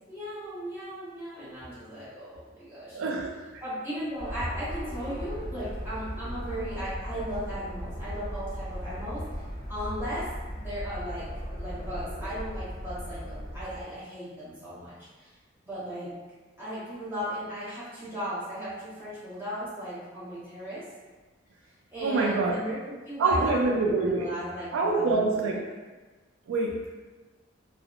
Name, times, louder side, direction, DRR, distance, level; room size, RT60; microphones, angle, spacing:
voice 1, 0.1-3.0 3.6-9.4 9.7-10.2 10.5-11.2 11.6-15.3 15.6-16.1 16.6-20.8 21.9-25.6, equal, 10° right, -12 dB, 1.1 m, -36 dB
voice 2, 2.9-3.3 22.0-22.5 23.2-24.3 24.7-25.6 26.5-27.0, right 3 dB, 80° right, 0 dB, 0.3 m, -25 dB
sound 1, 4.2-13.8, equal, 25° left, 0.5 m, -37 dB
2.8 x 2.0 x 2.4 m, 1.3 s
head